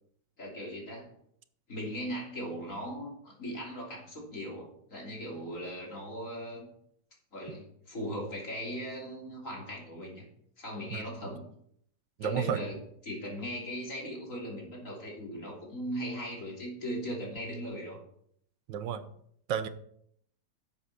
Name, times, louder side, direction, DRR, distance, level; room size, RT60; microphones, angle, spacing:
voice 1, 0.4-1.1 1.7-6.7 7.3-10.3 10.6-11.5 12.2-12.8 13.0-18.0, equal, 45° left, -2 dB, 3.5 m, -38 dB
voice 2, 12.2-12.6 18.7-19.0 19.5-19.7, right 8 dB, 85° right, 12 dB, 1.5 m, -31 dB
11.0 x 7.5 x 4.2 m, 0.68 s
omnidirectional pair, 1.9 m